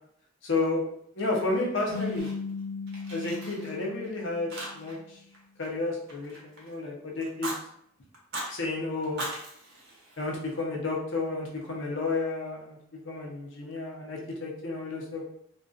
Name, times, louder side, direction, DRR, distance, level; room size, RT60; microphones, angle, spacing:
voice 1, 0.4-0.8 1.1-2.3 3.1-5.2 5.6-7.5 8.5-9.2 10.2-12.8 13.0-15.2, left 3 dB, 70° left, -1 dB, 0.7 m, -31 dB
Fire, 1.5-2.6 2.9-4.1 4.5-5.1 5.3-6.7 7.2-7.6 8.1-8.5 9.0-10.6, right 1 dB, 60° right, 0.7 m, -40 dB
sound 1, 1.9-5.1, left 4 dB, 20° right, 0.6 m, -37 dB
2.5 x 2.3 x 2.3 m, 0.70 s
head